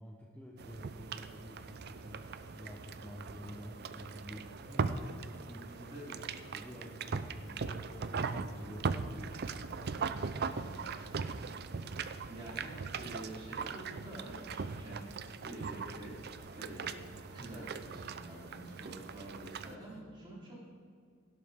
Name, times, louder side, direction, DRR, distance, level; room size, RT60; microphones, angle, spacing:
voice 1, 0.0-6.0 6.5-11.3, equal, 5° left, -2 dB, 0.9 m, -50 dB
sound 1, 0.6-20.0, left 1 dB, 35° left, 1.1 m, -61 dB
sound 2, 0.6-19.7, right 5 dB, 50° right, 0.5 m, -40 dB
voice 2, 5.9-6.2 12.3-16.9 17.3-20.5, right 1 dB, 20° right, -6 dB, 3.7 m, -47 dB
17.0 x 11.5 x 3.7 m, 2.2 s
head